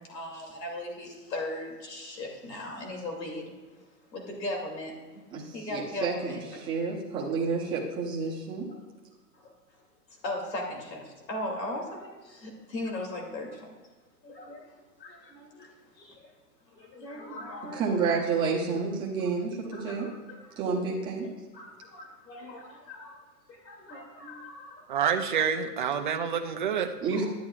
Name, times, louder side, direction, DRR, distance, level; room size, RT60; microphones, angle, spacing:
voice 1, 0.0-3.5 4.1-5.2 5.5-6.5 9.3-9.5 10.2-13.7 14.2-14.7 15.0-16.2 16.7-18.0 19.7-20.6 21.5-23.2 23.5-24.9 27.1-27.3, left 1 dB, 90° left, 1 dB, 2.7 m, -38 dB
voice 2, 5.3-8.7 17.7-20.1 20.6-21.3 27.0-27.2, right 4 dB, 10° right, -4 dB, 0.8 m, -30 dB
voice 3, 24.9-26.9, right 7 dB, 35° right, 5 dB, 0.4 m, -27 dB
12.0 x 9.7 x 2.4 m, 1.4 s
hypercardioid pair, 165°, 49 cm